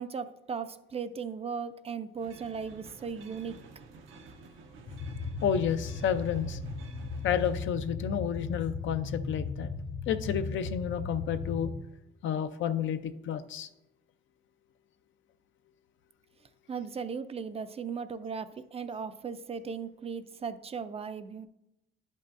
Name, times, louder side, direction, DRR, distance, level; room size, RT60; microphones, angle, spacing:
voice 1, 0.0-3.6 16.7-21.5, right 6 dB, 30° right, 12 dB, 0.4 m, -37 dB
sound 1, 2.2-7.6, right 3 dB, 85° right, 0.8 m, -51 dB
sound 2, 4.9-11.8, left 4 dB, 40° left, 0.8 m, -37 dB
voice 2, 5.4-6.6 7.2-9.7 10.1-11.7 12.2-13.7, left 8 dB, 75° left, 11 dB, 0.5 m, -30 dB
10.5 x 5.5 x 2.5 m, 0.88 s
cardioid pair, 90°, 20 cm